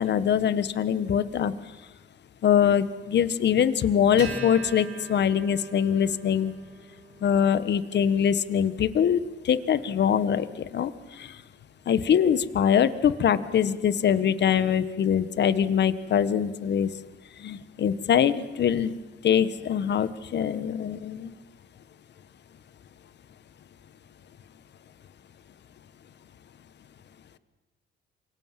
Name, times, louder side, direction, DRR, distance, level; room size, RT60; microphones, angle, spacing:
voice 1, 0.0-1.5 2.4-6.5 7.2-9.2 9.4-10.9 11.2-11.3 11.9-16.9 17.4-18.9 19.2-21.3, left 8 dB, 60° left, 14 dB, 1.5 m, -23 dB
Acoustic guitar, 4.2-11.0, right 5 dB, 85° right, 7.9 m, -44 dB
28.0 x 24.0 x 7.7 m, 1.2 s
cardioid pair, 90°, 20 cm